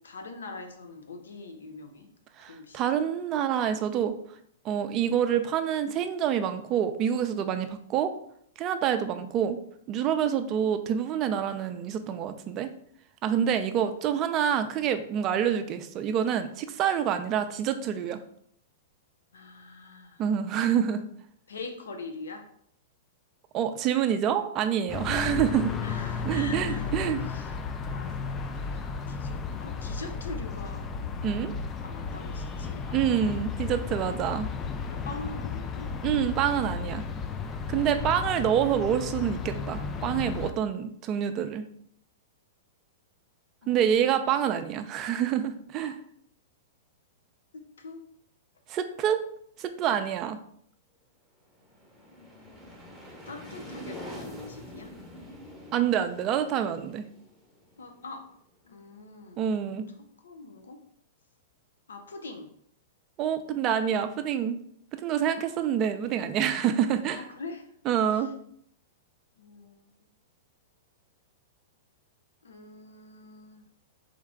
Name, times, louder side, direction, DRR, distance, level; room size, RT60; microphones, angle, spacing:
voice 1, 0.0-2.1 2.5-3.0 19.3-20.2 21.5-22.5 25.8-26.9 27.3-27.5 27.9-28.2 28.7-30.9 31.8-33.4 34.8-35.9 43.6-44.3 47.5-48.0 49.9-50.0 52.1-52.9 53.3-54.9 57.8-58.2 58.6-59.8 60.2-60.8 61.9-62.5 65.5-65.7 67.1-67.6 69.4-69.8 72.4-73.6, left 3 dB, 90° left, 5 dB, 0.7 m, -43 dB
voice 2, 2.4-4.1 4.6-8.1 8.6-9.6 9.9-12.7 13.2-18.2 20.2-21.1 23.5-25.7 26.2-27.2 31.2-31.5 32.9-34.5 36.0-37.0 37.7-41.6 43.7-46.0 48.7-49.2 49.6-50.4 55.7-57.1 59.4-59.8 63.2-64.6 64.9-67.3 67.8-68.3, right 9 dB, 35° right, 8 dB, 0.5 m, -27 dB
sound 1, 24.9-40.5, left 5 dB, 25° left, 0.4 m, -34 dB
sound 2, 51.5-58.2, equal, ahead, 0.9 m, -45 dB
3.6 x 3.2 x 3.6 m, 0.66 s
hypercardioid pair, 125°, 0 cm